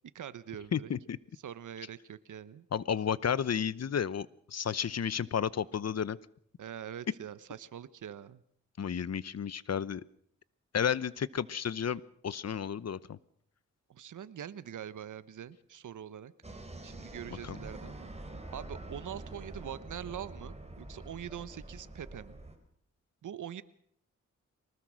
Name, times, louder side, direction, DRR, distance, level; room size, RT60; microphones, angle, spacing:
voice 1, 0.1-0.9 1.4-2.6 6.6-8.4 13.9-16.3 16.8-18.1 18.5-22.4 23.2-23.6, right 9 dB, 85° right, 15 dB, 1.0 m, -43 dB
voice 2, 0.7-1.2 2.7-6.2 8.8-10.0 10.7-13.2 17.4-17.6, left 8 dB, 55° left, 20 dB, 0.8 m, -32 dB
sound 1, 16.4-22.6, right 2 dB, 20° right, 4.4 m, -46 dB
23.5 x 19.5 x 6.4 m, 0.65 s
cardioid pair, 65°, 30 cm